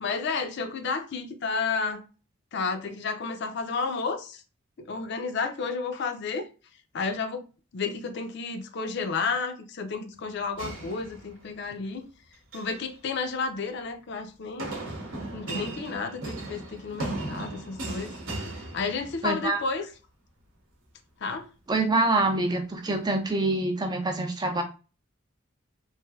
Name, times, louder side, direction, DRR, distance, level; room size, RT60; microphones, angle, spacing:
voice 1, 0.0-2.0 2.5-4.4 4.9-6.5 6.9-7.4 7.7-12.0 12.5-14.7 15.3-18.1 18.7-19.9 21.2-21.5, left 4 dB, 55° left, 0.4 m, -31 dB
sound 1, 10.6-11.7 12.3-12.8 14.6-19.4, right 2 dB, 65° right, 0.8 m, -37 dB
voice 2, 19.2-19.6 21.7-24.6, right 2 dB, 20° right, 0.3 m, -25 dB
3.2 x 2.6 x 2.3 m
head